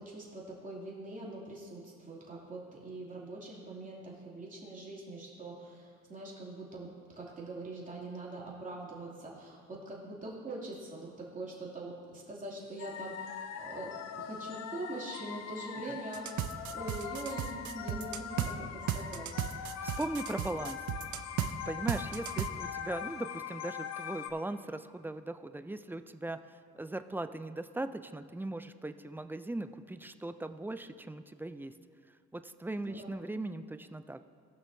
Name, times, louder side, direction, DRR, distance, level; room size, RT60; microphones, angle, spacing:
voice 1, 0.0-19.3 32.8-33.2, right 2 dB, 25° right, -6 dB, 2.7 m, -43 dB
sound 1, 12.8-24.3, left 8 dB, 60° left, 0.6 m, -42 dB
sound 2, 16.1-18.5 18.9-21.5 21.9-22.5, right 12 dB, 75° right, 0.6 m, -35 dB
voice 2, 19.8-20.8 21.7-31.7 32.3-34.2, right 2 dB, 5° right, 10 dB, 0.3 m, -39 dB
18.5 x 6.2 x 2.7 m, 2.1 s
cardioid pair, 90°, 30 cm